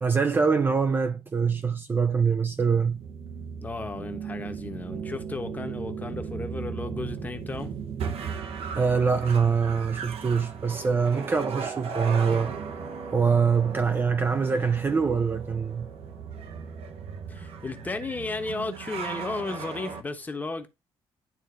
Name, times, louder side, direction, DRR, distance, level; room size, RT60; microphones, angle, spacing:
voice 1, 0.0-3.0 8.7-12.5 13.1-15.9, right 5 dB, 20° right, 0.4 m, -24 dB
sound 1, 2.7-20.0, right 6 dB, 80° right, 0.9 m, -37 dB
voice 2, 3.6-7.7 17.3-20.7, left 3 dB, 15° left, 0.9 m, -34 dB
11.0 x 3.8 x 2.5 m
cardioid pair, 170°, 10 cm